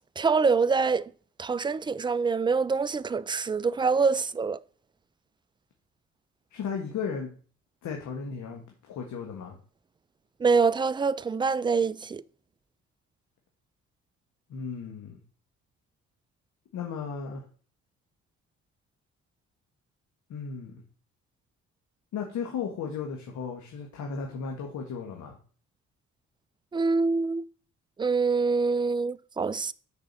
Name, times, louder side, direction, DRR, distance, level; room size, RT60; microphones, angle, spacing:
voice 1, 0.2-1.1 1.4-4.6 10.4-12.2 26.7-27.4 28.0-29.7, right 4 dB, 15° right, 0.4 m, -25 dB
voice 2, 6.5-7.3 7.8-9.6 14.5-15.2 16.7-17.4 20.3-20.8 22.1-25.4, left 6 dB, 75° left, 1.7 m, -35 dB
6.6 x 5.2 x 6.8 m
cardioid pair, 90°, 30 cm